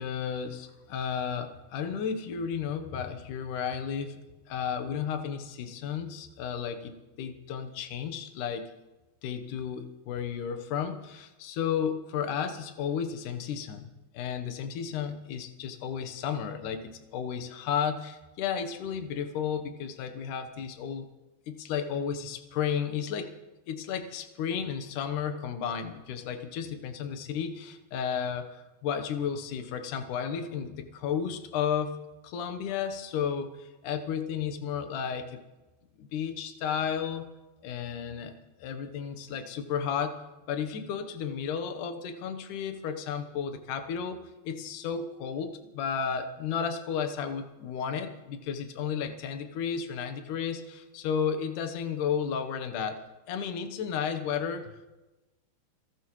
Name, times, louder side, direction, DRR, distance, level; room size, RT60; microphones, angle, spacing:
voice 1, 0.0-4.2 4.5-8.7 9.2-13.9 14.1-21.1 21.5-23.3 23.7-31.9 32.2-35.4 36.0-37.3 37.6-40.2 40.5-44.2 44.5-53.0 53.3-54.9, left 7 dB, 70° left, 7 dB, 2.0 m, -33 dB
29.0 x 13.0 x 3.1 m, 1.1 s
omnidirectional pair, 5.1 m